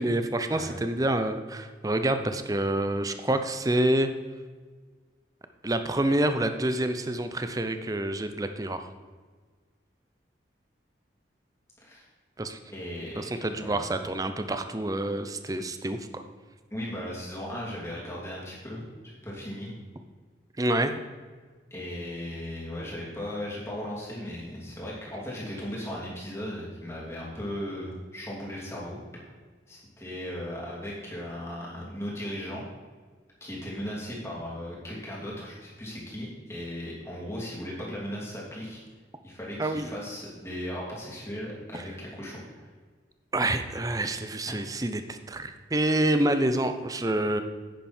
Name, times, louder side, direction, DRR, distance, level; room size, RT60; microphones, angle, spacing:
voice 1, 0.0-4.1 5.6-8.9 12.4-12.6 13.2-16.2 20.6-20.9 39.6-39.9 41.7-41.8 43.3-47.4, right 1 dB, 20° right, 8 dB, 0.6 m, -27 dB
voice 2, 12.7-13.8 16.7-19.7 21.7-29.2 29.7-32.6 33.4-38.8 39.2-42.7 44.5-44.6, equal, 15° left, -6 dB, 3.0 m, -37 dB
10.0 x 9.3 x 4.4 m, 1.5 s
head